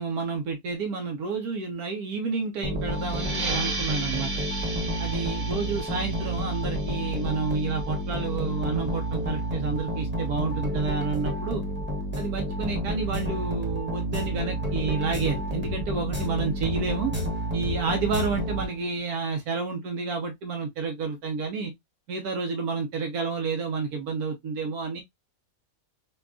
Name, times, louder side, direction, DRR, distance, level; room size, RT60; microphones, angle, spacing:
voice 1, 0.0-4.3 5.0-11.6 12.2-17.1 17.5-21.7 22.1-25.0, right 4 dB, 85° right, 1.3 m, -30 dB
sound 1, 2.6-19.1, equal, 10° right, 0.8 m, -30 dB
sound 2, 2.9-8.2, right 3 dB, 45° right, 1.1 m, -35 dB
5.1 x 2.3 x 2.3 m
omnidirectional pair, 1.6 m